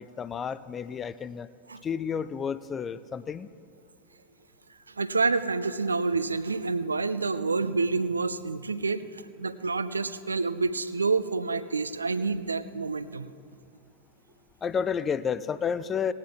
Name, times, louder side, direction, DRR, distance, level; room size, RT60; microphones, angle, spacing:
voice 1, 0.0-1.5 1.8-3.5 14.6-16.1, left 7 dB, 20° left, 15 dB, 0.4 m, -31 dB
voice 2, 4.9-13.3, right 4 dB, 75° right, 13 dB, 0.4 m, -28 dB
18.0 x 9.5 x 3.6 m, 2.5 s
figure-of-eight pair, 90°, 0 cm